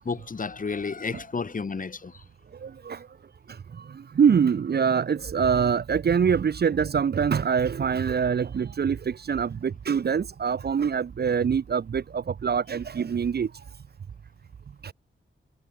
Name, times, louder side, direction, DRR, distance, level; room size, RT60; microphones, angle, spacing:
voice 1, 0.0-2.2, left 4 dB, 40° left, 1.9 m, -32 dB
voice 2, 2.6-3.0 4.2-13.5 14.8-14.9, right 7 dB, 50° right, 0.6 m, -24 dB
wide cardioid pair, 155°, 21 cm